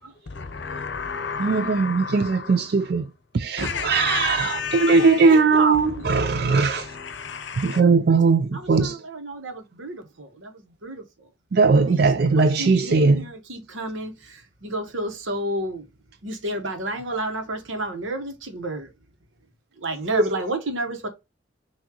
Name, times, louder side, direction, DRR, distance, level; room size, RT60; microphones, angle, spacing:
voice 1, 0.3-2.9 3.6-5.4 5.8-7.8, left 6 dB, 65° left, 0.7 m, -32 dB
voice 2, 1.4-3.1 3.3-6.9 7.6-9.0 11.5-13.3 20.2-20.3, right 4 dB, 50° right, 0.4 m, -19 dB
voice 3, 5.3-6.4 8.5-11.3 11.9-15.9 16.2-18.9 19.8-21.1, right 1 dB, 80° right, 1.3 m, -31 dB
6.0 x 2.7 x 2.9 m
head